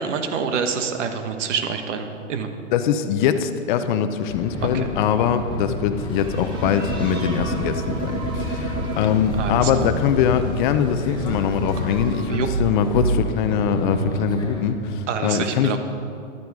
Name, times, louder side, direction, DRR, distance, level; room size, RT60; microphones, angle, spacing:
voice 1, 0.0-2.5 4.6-4.9 9.4-9.7 12.3-12.5 15.1-15.8, right 6 dB, 65° right, 7 dB, 1.4 m, -26 dB
voice 2, 2.7-15.8, left 8 dB, 40° left, 10 dB, 0.7 m, -22 dB
sound 1, 4.3-14.7, left 2 dB, 10° left, 1.0 m, -32 dB
sound 2, 6.1-12.2, right 1 dB, 10° right, 1.8 m, -35 dB
sound 3, 6.5-10.3 11.1-14.7, right 3 dB, 80° right, 1.7 m, -29 dB
12.5 x 9.2 x 4.8 m, 2.5 s
hypercardioid pair, 140°, 39 cm